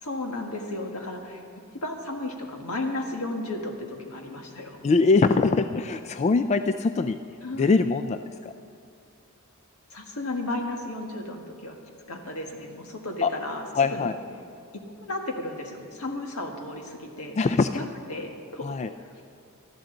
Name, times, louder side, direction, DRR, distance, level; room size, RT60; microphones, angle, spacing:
voice 1, 0.0-1.4 1.8-4.8 7.4-7.6 9.9-11.8 12.1-13.6 13.9-14.1 15.0-17.5 17.7-17.8 18.1-18.7, left 2 dB, 80° left, 2 dB, 1.7 m, -34 dB
voice 2, 4.8-7.2 7.5-8.5 13.2-13.3 13.7-14.2 17.4-17.9 18.6-18.9, left 4 dB, 30° left, 10 dB, 0.3 m, -23 dB
19.5 x 13.5 x 3.9 m, 2.4 s
head